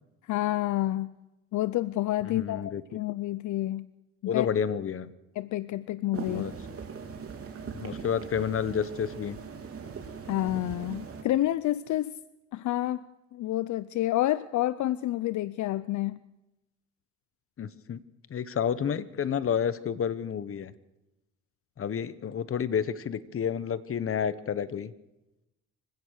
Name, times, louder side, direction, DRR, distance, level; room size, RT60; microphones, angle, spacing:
voice 1, 0.3-1.1 1.5-3.9 4.2-4.5 5.4-6.5 10.3-12.2 12.5-16.2, left 15 dB, 70° left, 17 dB, 0.6 m, -29 dB
voice 2, 2.3-2.8 4.3-5.1 6.3-6.5 7.8-9.4 17.6-18.0 18.3-20.7 21.8-24.9, left 8 dB, 45° left, 15 dB, 1.1 m, -30 dB
sound 1, 6.1-11.2, right 5 dB, 50° right, 3.6 m, -40 dB
25.0 x 16.0 x 6.5 m, 0.98 s
cardioid pair, 90°, 30 cm